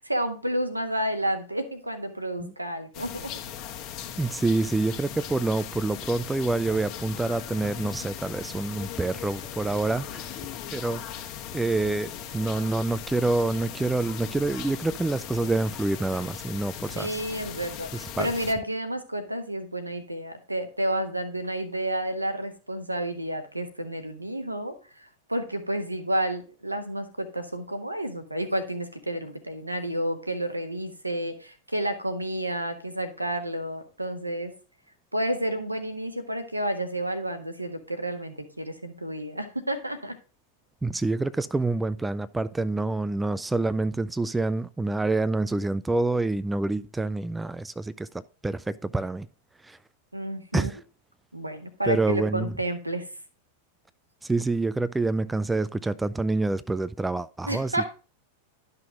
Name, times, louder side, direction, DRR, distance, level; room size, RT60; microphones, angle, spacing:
voice 1, 0.0-3.3 17.0-34.5 35.1-40.1 50.1-50.7 51.3-53.1 57.5-57.9, right 1 dB, 85° right, 1.3 m, -30 dB
sound 1, 2.9-18.5, left 9 dB, 40° left, 1.4 m, -38 dB
voice 2, 4.2-10.4 10.7-11.3 11.5-17.2 17.9-18.3 40.8-49.3 49.6-49.8 50.5-50.8 51.9-52.5 54.2-57.9, right 2 dB, 10° right, 0.4 m, -27 dB
12.0 x 5.9 x 3.7 m
figure-of-eight pair, 90°, 0 cm